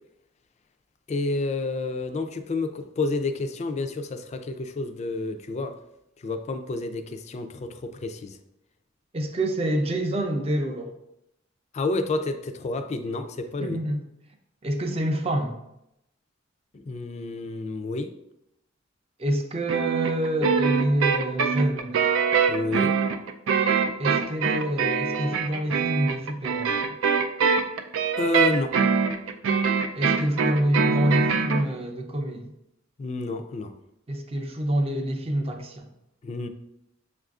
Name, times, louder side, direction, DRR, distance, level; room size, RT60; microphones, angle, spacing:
voice 1, 1.1-5.7 6.2-8.4 11.7-13.8 16.7-18.1 22.5-23.0 28.2-28.7 33.0-33.7 36.2-36.5, left 3 dB, 35° left, 0.3 m, -29 dB
voice 2, 9.1-10.9 13.6-14.0 14.6-15.6 19.2-22.0 24.0-26.8 29.9-32.5 34.1-35.9, right 1 dB, 30° right, 0.5 m, -27 dB
sound 1, 19.7-31.6, right 5 dB, 90° right, 0.4 m, -24 dB
6.9 x 2.5 x 2.3 m
head